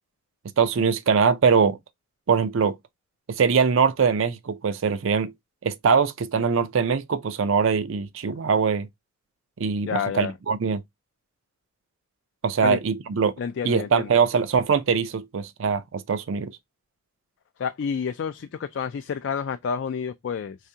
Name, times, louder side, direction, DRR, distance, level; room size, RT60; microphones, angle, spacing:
voice 1, 0.6-1.8 2.3-2.8 3.3-5.3 5.6-8.9 9.6-10.8 12.4-13.3 13.6-16.5, right 5 dB, 65° right, 0.4 m, -22 dB
voice 2, 9.9-10.3 12.6-12.8 13.4-14.1 17.6-20.6, left 6 dB, 55° left, 0.3 m, -29 dB
4.8 x 3.3 x 2.7 m
head